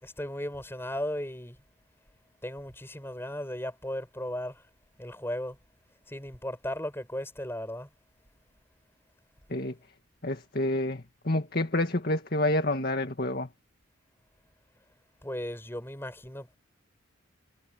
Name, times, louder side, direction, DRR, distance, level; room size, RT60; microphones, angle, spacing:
voice 1, 0.0-1.6 2.4-4.6 5.0-5.6 6.1-7.9 15.2-16.6, left 1 dB, 10° left, 6.8 m, -36 dB
voice 2, 10.2-13.5, left 1 dB, 45° left, 2.0 m, -28 dB
head